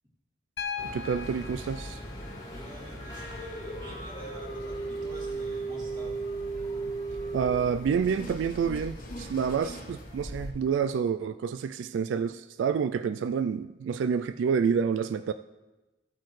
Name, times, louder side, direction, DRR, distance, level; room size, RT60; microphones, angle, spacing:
Piano, 0.6-4.6 6.1-6.2, left 6 dB, 80° left, 1.1 m, -41 dB
sound 1, 0.8-10.5, equal, 20° left, 1.5 m, -43 dB
voice 1, 0.9-2.0 7.3-15.3, right 6 dB, 85° right, 11 dB, 0.3 m, -28 dB
sound 2, 1.9-10.1, right 3 dB, 50° left, 1.3 m, -38 dB
voice 2, 2.5-6.2, right 1 dB, 25° right, -4 dB, 2.6 m, -48 dB
14.5 x 8.5 x 3.2 m, 1.1 s
head